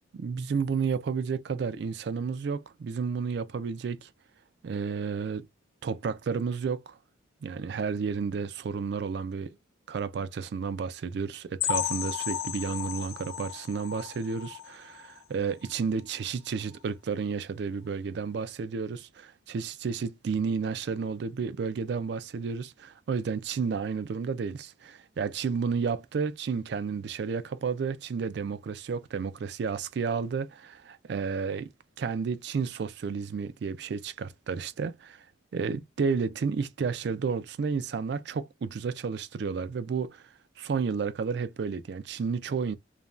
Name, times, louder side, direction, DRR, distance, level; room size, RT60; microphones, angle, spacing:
voice 1, 0.1-4.1 4.6-5.5 5.8-7.0 7.4-9.5 9.9-31.7 32.0-35.2 35.5-40.3 40.6-42.8, right 5 dB, 55° right, 0.3 m, -31 dB
sound 1, 11.6-15.2 15.6-15.8 16.1-16.2 16.7-16.8, left 10 dB, 90° left, 0.4 m, -34 dB
2.5 x 2.2 x 3.0 m
head